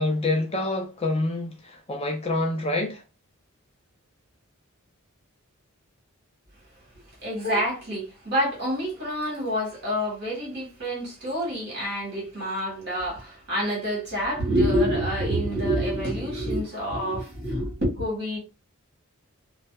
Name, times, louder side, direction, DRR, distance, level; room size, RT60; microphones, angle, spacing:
voice 1, 0.0-3.0, left 2 dB, 30° left, 0.4 m, -27 dB
voice 2, 7.2-18.4, equal, 50° right, 1.4 m, -27 dB
2.6 x 2.2 x 2.2 m
head